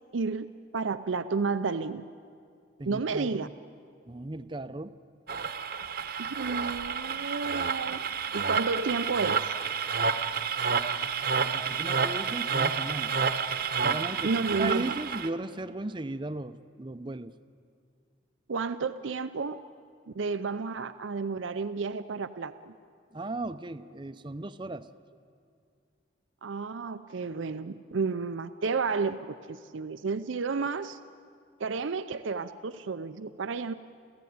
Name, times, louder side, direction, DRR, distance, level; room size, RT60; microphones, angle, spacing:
voice 1, 0.1-0.5 0.7-2.1 2.9-3.5 6.2-8.1 8.3-9.5 14.2-15.0 18.5-19.6 20.1-22.7 26.4-31.0 31.6-33.7, right 4 dB, 80° right, 11 dB, 0.6 m, -31 dB
voice 2, 2.8-3.5 4.1-5.0 11.4-13.1 13.8-14.3 14.6-17.3 23.1-24.9, right 2 dB, 25° right, 12 dB, 0.6 m, -36 dB
sound 1, 5.3-15.3, right 6 dB, 50° right, 1.0 m, -30 dB
29.5 x 14.5 x 9.5 m, 2.3 s
head